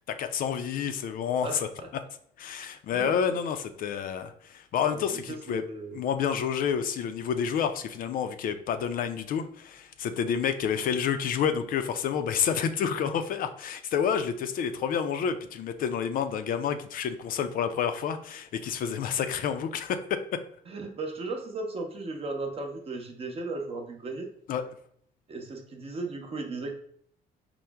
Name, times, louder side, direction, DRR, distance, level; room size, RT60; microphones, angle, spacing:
voice 1, 0.1-1.7 2.4-5.6 5.9-20.2 24.5-24.6, left 7 dB, 55° left, 9 dB, 0.4 m, -29 dB
voice 2, 1.4-1.9 2.9-3.4 4.9-6.0 20.7-24.3 25.3-26.7, right 3 dB, 35° right, 3 dB, 0.7 m, -36 dB
4.4 x 2.0 x 3.4 m, 0.64 s
cardioid pair, 110°, 17 cm